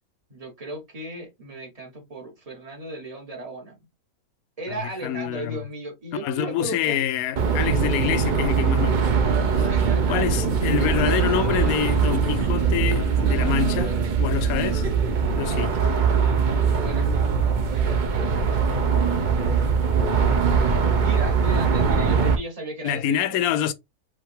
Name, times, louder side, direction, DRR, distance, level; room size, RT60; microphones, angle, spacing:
voice 1, 0.3-3.9 4.6-7.0 9.6-10.6 16.8-17.2 17.6-18.7 19.7-19.9 21.0-23.4, right 1 dB, 25° right, 1.4 m, -36 dB
voice 2, 5.0-5.6 6.2-9.1 9.5-9.7 10.1-14.9 15.4-15.7 22.8-23.7, left 10 dB, 75° left, 1.0 m, -26 dB
sound 1, 7.4-22.4, right 5 dB, 50° right, 0.6 m, -21 dB
4.9 x 2.7 x 3.5 m
omnidirectional pair, 1.6 m